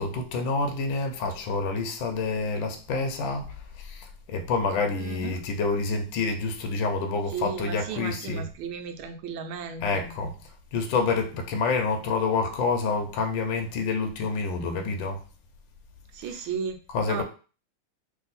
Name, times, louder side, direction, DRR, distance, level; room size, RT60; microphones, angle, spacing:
voice 1, 0.0-8.5 9.8-10.3 10.7-15.2 16.2-16.4 16.9-17.2, left 4 dB, 70° left, 1.3 m, -28 dB
voice 2, 5.0-5.4 7.3-10.1 16.1-16.8 17.1-17.2, right 6 dB, 80° right, 1.4 m, -34 dB
3.5 x 2.6 x 4.0 m
omnidirectional pair, 2.3 m